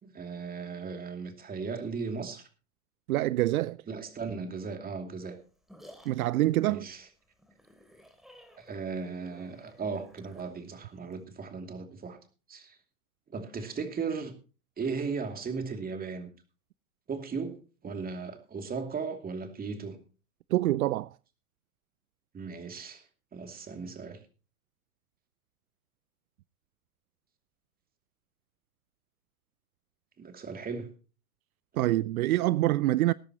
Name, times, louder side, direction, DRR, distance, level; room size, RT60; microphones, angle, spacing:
voice 1, 0.0-2.4 3.9-5.4 6.7-7.1 8.6-12.2 12.5-12.8 13.3-14.3 14.8-16.3 17.1-17.6 17.8-20.0 22.3-23.0 23.3-24.2 30.2-30.9, right 5 dB, 20° right, 2.6 m, -36 dB
voice 2, 3.1-3.8 6.1-6.9 20.5-21.1 31.8-33.1, right 16 dB, 75° right, 0.5 m, -25 dB
sound 1, 5.2-11.2, equal, ahead, 2.8 m, -56 dB
20.0 x 10.5 x 3.0 m
hypercardioid pair, 105°, 43 cm